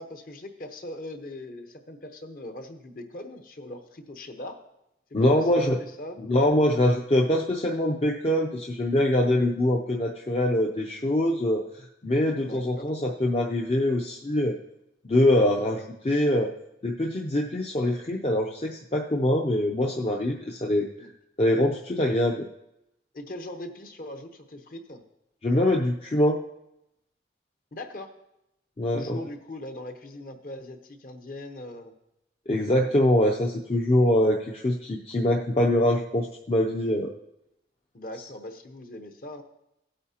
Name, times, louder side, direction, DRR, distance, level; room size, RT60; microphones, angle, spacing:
voice 1, 0.0-4.6 5.1-5.5 5.8-6.2 12.4-12.9 21.0-21.1 23.1-25.0 27.7-28.1 28.9-31.9 37.9-39.4, left 1 dB, 50° left, 6 dB, 1.0 m, -40 dB
voice 2, 5.1-5.8 6.2-11.6 12.0-14.6 15.0-16.5 16.8-20.8 21.4-22.5 25.4-26.4 28.8-29.2 32.5-37.1, left 1 dB, 35° left, 0 dB, 0.6 m, -24 dB
16.5 x 8.7 x 2.9 m, 0.86 s
head